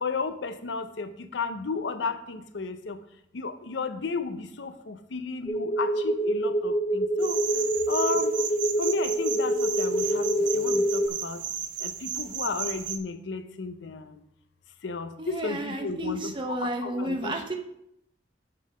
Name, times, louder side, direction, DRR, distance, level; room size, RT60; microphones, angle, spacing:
voice 1, 0.0-3.0 3.3-7.4 7.9-8.3 8.8-10.3 10.5-11.4 11.8-14.2 14.8-17.4, left 4 dB, 85° left, 10 dB, 0.7 m, -33 dB
sound 1, 5.5-11.1, right 1 dB, 20° left, 0.5 m, -26 dB
sound 2, 7.2-13.0, right 8 dB, 45° right, 0.6 m, -34 dB
voice 2, 15.2-17.6, right 1 dB, 25° right, 4 dB, 1.0 m, -32 dB
7.5 x 5.5 x 5.0 m, 0.77 s
head